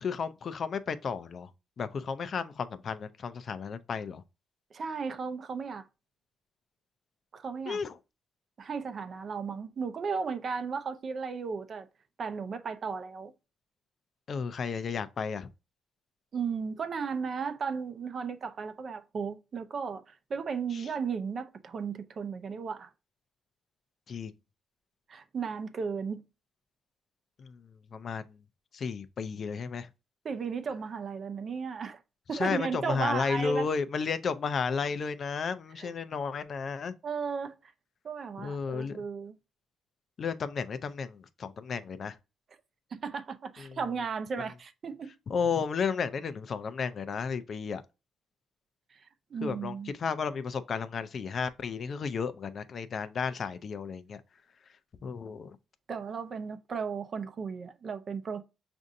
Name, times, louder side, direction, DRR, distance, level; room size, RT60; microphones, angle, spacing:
voice 1, 0.0-1.5 1.8-4.2 7.7-8.0 14.3-15.5 20.7-20.8 24.1-24.3 27.4-27.6 27.9-28.3 28.7-29.9 32.3-36.9 38.4-39.0 40.2-42.2 43.6-43.8 45.3-47.8 49.4-54.2 55.0-55.6, left 5 dB, 50° left, 0.4 m, -33 dB
voice 2, 4.7-5.9 7.3-7.8 8.6-11.9 12.2-13.3 16.3-22.9 25.1-26.2 30.2-32.0 32.3-33.7 35.8-35.9 37.0-37.5 38.0-39.3 42.9-45.1 48.9-49.9 55.9-58.4, right 5 dB, 50° right, 0.5 m, -35 dB
6.1 x 2.6 x 2.6 m
cardioid pair, 90°, 0 cm